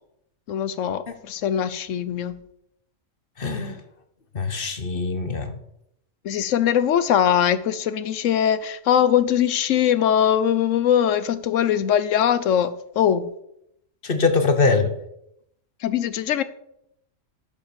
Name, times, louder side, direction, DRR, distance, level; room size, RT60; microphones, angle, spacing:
voice 1, 0.5-2.4 6.2-13.3 15.8-16.4, left 9 dB, 75° left, 1.1 m, -21 dB
voice 2, 3.4-3.8 4.3-5.5 14.0-14.9, left 4 dB, 45° left, 1.3 m, -22 dB
11.5 x 5.3 x 6.9 m
omnidirectional pair, 1.3 m